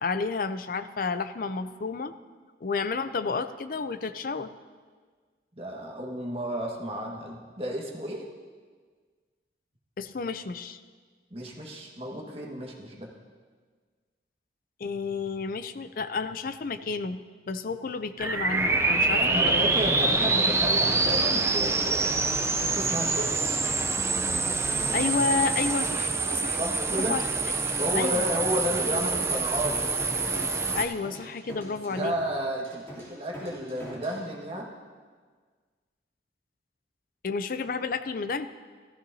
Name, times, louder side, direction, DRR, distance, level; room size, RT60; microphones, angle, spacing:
voice 1, 0.0-2.1 2.6-4.5 10.0-10.8 14.8-17.2 17.5-19.6 24.7-26.6 26.9-27.2 27.9-28.3 30.8-32.2 37.2-38.5, left 4 dB, 50° left, 11 dB, 0.5 m, -31 dB
voice 2, 5.6-8.2 11.3-13.1 19.2-22.1 22.6-23.6 26.6-27.2 27.8-29.9 31.9-34.7, equal, 35° right, -2 dB, 1.7 m, -32 dB
sound 1, 18.2-30.9, right 3 dB, 15° right, 0.6 m, -26 dB
sound 2, 27.3-34.2, equal, 15° left, 3.1 m, -44 dB
15.0 x 14.0 x 2.8 m, 1.6 s
head